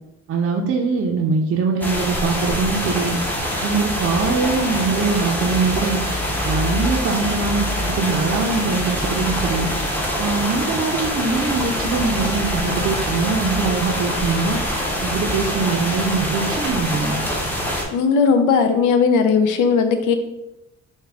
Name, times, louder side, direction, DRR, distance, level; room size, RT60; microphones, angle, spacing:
voice 1, 0.3-3.2 3.6-6.0 6.4-9.7 10.2-14.6 15.0-17.2, right 4 dB, 45° right, 1 dB, 0.5 m, -22 dB
sound 1, 1.8-17.8, equal, 5° left, 0.7 m, -24 dB
voice 2, 17.9-20.1, left 5 dB, 85° left, 7 dB, 0.5 m, -17 dB
3.6 x 2.2 x 3.3 m, 0.91 s
cardioid pair, 90°, 30 cm